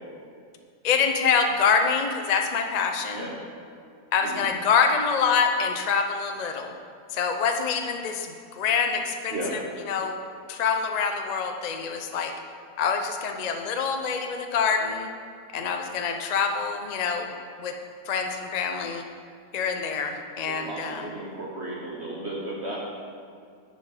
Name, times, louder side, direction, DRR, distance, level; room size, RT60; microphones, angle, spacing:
voice 1, 0.8-3.3 4.1-6.8 7.1-9.6 9.8-10.2 10.5-12.3 12.8-15.1 15.5-17.3 17.6-17.7 18.1-19.0 19.5-21.1, left 6 dB, 85° left, 4 dB, 0.3 m, -26 dB
voice 2, 20.4-22.8, right 1 dB, 45° right, -4 dB, 1.4 m, -34 dB
10.0 x 6.5 x 4.9 m, 2.4 s
omnidirectional pair, 1.8 m